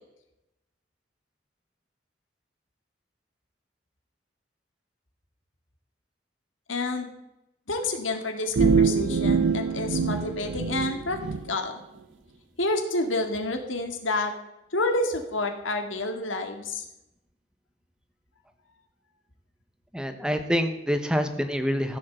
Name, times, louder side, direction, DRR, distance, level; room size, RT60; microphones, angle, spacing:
voice 1, 6.7-7.1 7.7-11.2 11.5-11.8 12.6-14.3 14.7-16.8, left 2 dB, 90° left, 5 dB, 2.1 m, -29 dB
sound 1, 8.6-11.4, right 5 dB, 80° right, 0.8 m, -24 dB
voice 2, 19.9-22.0, equal, 5° right, 8 dB, 0.9 m, -26 dB
15.0 x 7.4 x 7.6 m, 0.90 s
head